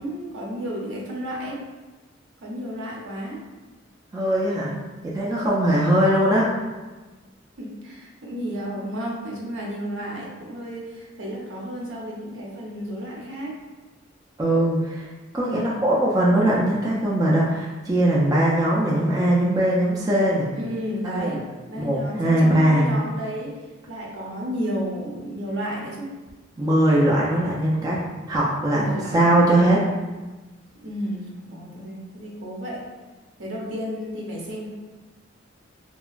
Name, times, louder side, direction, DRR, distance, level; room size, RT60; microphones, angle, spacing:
voice 1, 0.0-1.6 2.4-3.4 7.6-13.5 15.4-15.8 20.5-21.4 21.7-23.5 23.9-26.1 28.7-29.3 30.8-32.8 33.4-34.7, equal, 70° right, -3 dB, 0.7 m, -32 dB
voice 2, 4.1-4.8 5.0-6.5 14.4-15.1 15.3-20.5 21.0-21.4 21.8-22.9 26.6-28.0 28.3-29.8, right 1 dB, 20° right, -5 dB, 0.3 m, -20 dB
2.8 x 2.3 x 2.4 m, 1.2 s
head